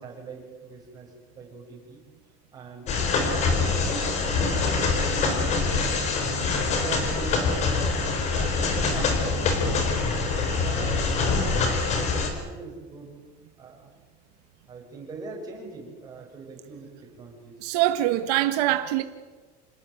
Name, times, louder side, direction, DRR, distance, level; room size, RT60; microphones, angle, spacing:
voice 1, 0.0-2.0 2.5-2.9 3.3-4.1 4.5-6.0 6.7-9.9 10.6-11.1 11.3-13.1 13.6-13.9 14.7-17.5, right 4 dB, 20° right, -1 dB, 7.3 m, -41 dB
sound 1, 2.9-12.3, left 4 dB, 35° left, 4.4 m, -24 dB
voice 2, 17.6-19.0, right 14 dB, 80° right, 9 dB, 1.4 m, -23 dB
27.5 x 18.5 x 9.6 m, 1.4 s
cardioid pair, 175°, 20 cm